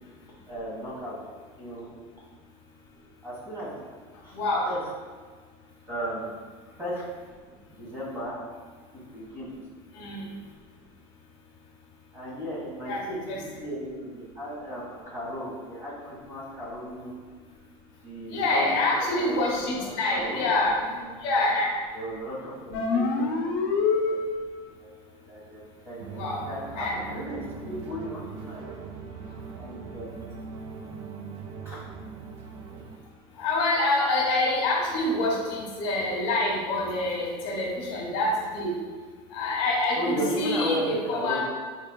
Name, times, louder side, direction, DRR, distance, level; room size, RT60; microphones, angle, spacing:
voice 1, 0.5-1.2 1.5-1.9 3.2-3.8 4.2-4.4 4.6-4.8 5.9-6.3 6.8-7.0 7.7-8.4 8.9-9.6 12.1-17.2 18.0-19.4 19.8-21.2 21.9-23.5 23.9-24.2 24.8-24.9 25.3-26.1 26.4-28.9 29.5-30.0 31.6-31.8 39.9-41.4, equal, 20° right, -7 dB, 1.5 m, -35 dB
voice 2, 4.3-4.7 9.9-10.3 12.9-13.4 18.3-20.7 21.2-21.7 26.1-26.4 26.8-26.9 33.4-38.7 39.3-41.4, left 2 dB, 70° left, -3 dB, 1.0 m, -26 dB
sound 1, 22.7-24.7, left 4 dB, 90° left, 0.5 m, -26 dB
sound 2, 26.0-33.0, right 5 dB, 50° right, 0.4 m, -41 dB
4.2 x 3.6 x 2.2 m, 1.5 s
cardioid pair, 155°, 12 cm